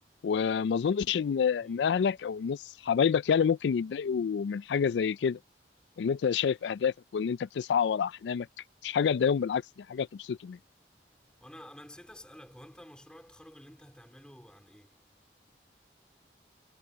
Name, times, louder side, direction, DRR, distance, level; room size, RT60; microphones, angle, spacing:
voice 1, 0.2-5.4 6.0-8.5 8.8-9.6 9.9-10.6, left 7 dB, 85° left, 0.3 m, -28 dB
voice 2, 10.9-15.6, equal, 5° left, 3.1 m, -52 dB
head